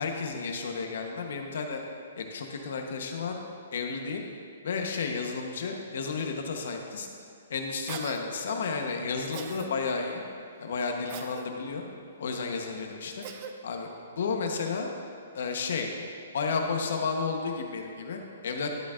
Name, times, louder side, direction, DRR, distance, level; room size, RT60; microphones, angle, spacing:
voice 1, 0.0-1.8 2.2-3.4 3.7-4.2 4.6-7.1 7.5-10.2 10.6-11.8 12.2-13.2 13.6-13.9 14.1-14.9 15.3-15.9 16.3-18.7, left 4 dB, 55° left, 3 dB, 1.0 m, -32 dB
Cough, 7.9-8.2 9.3-9.7 11.1-11.5 13.2-13.5, right 7 dB, 25° right, 0.4 m, -40 dB
11.5 x 9.2 x 2.5 m, 2.6 s
hypercardioid pair, 175°, 0 cm